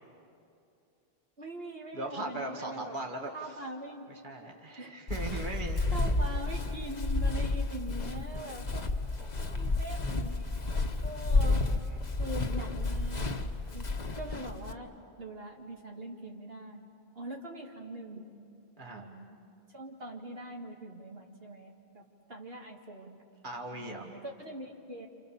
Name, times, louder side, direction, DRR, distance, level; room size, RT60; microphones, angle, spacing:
voice 1, 1.4-3.0 3.3-4.1 4.8-5.0 5.9-8.8 9.4-11.6 12.2-13.3 13.7-13.9 14.1-18.3 18.9-19.4 19.7-22.0 22.3-23.2 23.7-25.1, right 1 dB, 70° right, -1 dB, 2.3 m, -42 dB
voice 2, 1.9-3.6 4.1-5.8 6.2-6.3 9.2-9.6 11.2-12.0 18.8-19.0 23.4-24.2, right 2 dB, 50° right, 1 dB, 2.2 m, -40 dB
Walk footsteps, 5.1-14.7, left 2 dB, 45° left, 1.3 m, -31 dB
29.0 x 29.0 x 7.1 m, 2.6 s
omnidirectional pair, 1.0 m